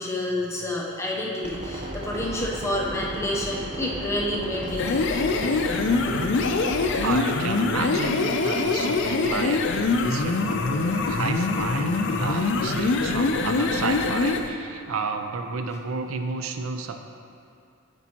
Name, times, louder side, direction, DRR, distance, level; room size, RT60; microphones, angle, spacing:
voice 1, 0.0-5.0, left 1 dB, 15° left, -3 dB, 0.7 m, -29 dB
sound 1, 1.4-7.0, right 1 dB, 25° right, 0.8 m, -34 dB
sound 2, 4.7-14.5, left 3 dB, 55° left, 0.4 m, -24 dB
voice 2, 7.0-17.0, right 4 dB, 70° right, 6 dB, 0.5 m, -31 dB
8.3 x 5.2 x 2.9 m, 2.5 s
head